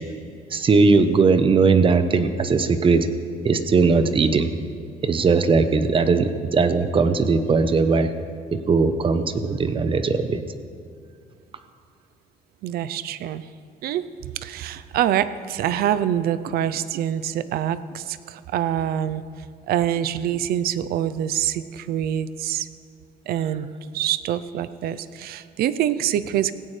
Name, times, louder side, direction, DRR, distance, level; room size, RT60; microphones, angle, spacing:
voice 1, 0.5-3.1 3.4-4.5 5.0-8.1 8.5-10.4, right 4 dB, 35° right, 10 dB, 0.8 m, -19 dB
voice 2, 12.6-13.4 13.8-19.2 19.7-22.7 23.3-23.7 23.9-26.5, right 11 dB, 75° right, 14 dB, 0.6 m, -25 dB
17.5 x 16.5 x 3.3 m, 2.3 s
cardioid pair, 120°, 16 cm